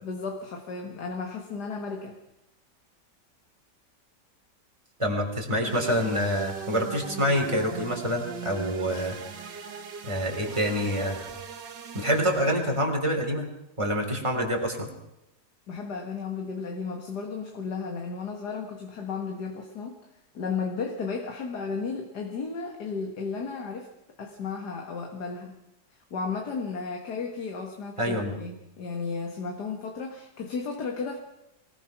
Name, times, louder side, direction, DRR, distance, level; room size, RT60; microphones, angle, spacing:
voice 1, 0.0-2.2 15.7-20.0 20.3-23.9 24.2-25.6 25.9-31.2, left 5 dB, 65° left, 3 dB, 2.3 m, -34 dB
voice 2, 5.0-9.6 10.0-11.2 11.9-13.5 13.8-14.9 28.0-28.3, equal, 15° right, 1 dB, 3.6 m, -27 dB
sound 1, 5.7-12.8, right 7 dB, 90° right, 2.1 m, -40 dB
23.5 x 18.5 x 6.0 m, 0.84 s
omnidirectional pair, 1.9 m